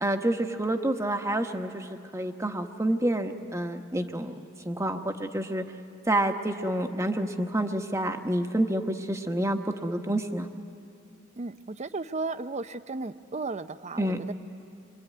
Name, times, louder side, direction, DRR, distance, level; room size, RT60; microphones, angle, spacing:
voice 1, 0.0-1.9 2.1-4.4 4.6-5.6 6.1-10.5 14.0-14.2, right 1 dB, 15° right, 5 dB, 1.2 m, -28 dB
voice 2, 11.4-14.3, right 3 dB, 35° right, 12 dB, 0.6 m, -35 dB
26.5 x 24.0 x 9.4 m, 2.5 s
head